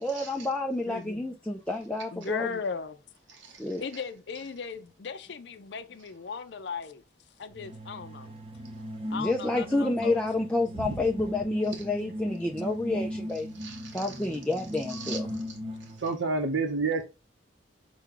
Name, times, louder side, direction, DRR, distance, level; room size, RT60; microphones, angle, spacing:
voice 1, 0.0-2.5 3.6-3.8 9.1-13.5 13.9-15.3, left 2 dB, 5° left, 0.4 m, -29 dB
voice 2, 0.9-1.2 2.1-3.0 3.8-7.0 7.4-8.3 9.1-10.2, left 5 dB, 65° left, 0.5 m, -37 dB
sound 1, 7.5-16.1, equal, 30° right, 0.7 m, -37 dB
voice 3, 13.6-14.1 14.9-15.2 16.0-17.0, right 3 dB, 75° right, 0.8 m, -31 dB
5.9 x 2.2 x 3.7 m
head